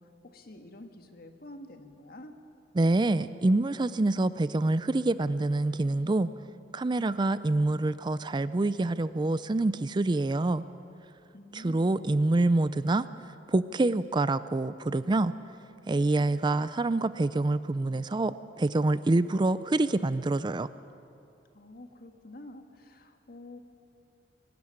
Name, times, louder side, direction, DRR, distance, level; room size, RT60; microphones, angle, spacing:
voice 1, 0.0-2.3 11.3-11.9 21.5-23.6, left 1 dB, 55° left, 6 dB, 1.6 m, -48 dB
voice 2, 2.8-6.3 6.7-10.6 11.5-13.0 13.5-15.3 15.9-20.7, right 2 dB, 25° right, 15 dB, 0.4 m, -26 dB
23.5 x 13.0 x 10.0 m, 2.6 s
head